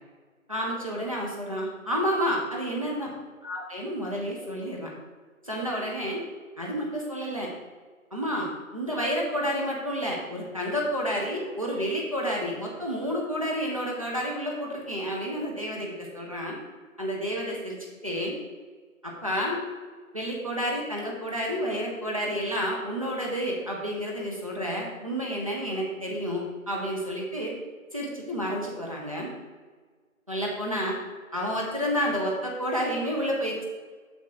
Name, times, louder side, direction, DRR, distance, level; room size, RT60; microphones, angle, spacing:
voice 1, 0.5-3.1 3.4-4.9 5.4-6.2 6.6-7.5 8.1-16.6 17.0-17.8 18.0-18.3 19.0-19.6 20.1-27.5 27.9-29.3 30.3-31.0 31.3-33.6, equal, 25° right, -3 dB, 1.3 m, -30 dB
9.4 x 7.8 x 3.8 m, 1.5 s
figure-of-eight pair, 175°, 42 cm